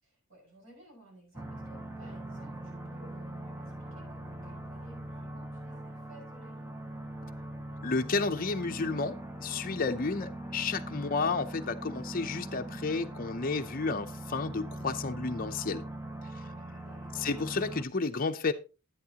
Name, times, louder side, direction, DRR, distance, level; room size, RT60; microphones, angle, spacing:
voice 1, 0.0-6.8 16.8-17.3, right 1 dB, 75° right, -1 dB, 6.0 m, -57 dB
sound 1, 1.3-17.8, right 1 dB, 10° right, 0.8 m, -41 dB
voice 2, 7.8-15.8 17.1-18.5, left 4 dB, 45° left, 5 dB, 0.7 m, -31 dB
11.0 x 9.5 x 2.9 m, 0.31 s
head